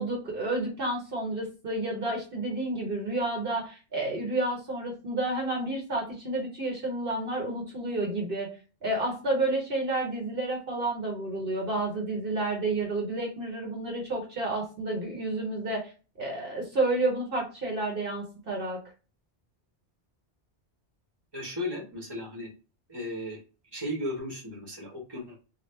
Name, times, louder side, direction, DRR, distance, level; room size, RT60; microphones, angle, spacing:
voice 1, 0.0-8.5 8.8-15.8 16.2-18.8, right 2 dB, 55° right, 0 dB, 1.1 m, -30 dB
voice 2, 21.3-22.5 22.9-23.4 23.7-25.4, left 1 dB, 25° right, 0 dB, 1.0 m, -35 dB
2.8 x 2.3 x 3.2 m, 0.33 s
omnidirectional pair, 1.2 m